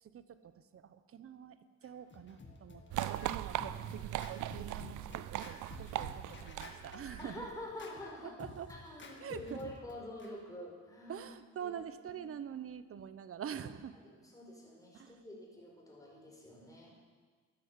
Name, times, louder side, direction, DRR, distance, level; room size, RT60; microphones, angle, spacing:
voice 1, 0.0-3.3 3.8-4.3 4.5-7.5 8.2-8.7 9.2-9.6 11.1-14.0 14.9-15.1, right 8 dB, 50° right, 12 dB, 0.9 m, -46 dB
Scratching (performance technique), 1.8-10.3, left 3 dB, 40° left, 2.0 m, -51 dB
sound 1, 2.9-7.6, right 14 dB, 85° right, 0.6 m, -39 dB
voice 2, 7.2-8.4 8.7-11.2 11.6-12.2 13.9-16.9, left 1 dB, 10° left, -2 dB, 4.8 m, -48 dB
13.0 x 9.7 x 7.3 m, 1.5 s
cardioid pair, 90°, 30 cm